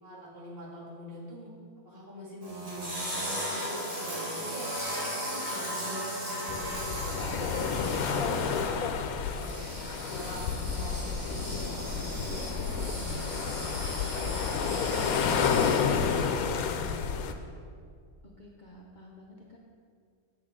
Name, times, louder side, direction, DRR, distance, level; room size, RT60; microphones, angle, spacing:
voice 1, 0.0-1.5 1.8-9.8 10.1-12.5 12.7-17.4, equal, 40° right, -7 dB, 2.3 m, -44 dB
sound 1, 2.4-16.2, equal, 60° right, 2.7 m, -37 dB
sound 2, 6.5-17.3, left 6 dB, 90° left, 1.1 m, -30 dB
voice 2, 18.2-19.6, left 1 dB, 45° left, -2 dB, 0.7 m, -51 dB
8.2 x 7.6 x 3.7 m, 2.2 s
omnidirectional pair, 1.5 m